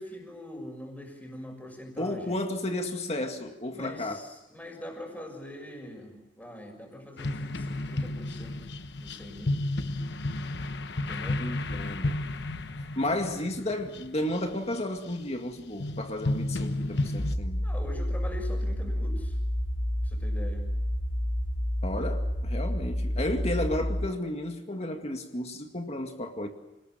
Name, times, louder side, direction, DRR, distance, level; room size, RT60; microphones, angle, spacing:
voice 1, 0.0-2.4 3.7-8.6 9.0-9.6 10.9-11.4 17.6-19.4 20.0-20.7, left 1 dB, 10° left, 6.3 m, -43 dB
voice 2, 2.0-4.2 11.4-12.2 12.8-17.7 21.8-26.5, left 1 dB, 35° left, 2.1 m, -33 dB
sound 1, 7.2-15.1 15.8-17.3, left 2 dB, 65° left, 1.1 m, -32 dB
sound 2, 17.2-24.1, equal, 90° left, 2.7 m, -30 dB
28.5 x 19.5 x 9.1 m
head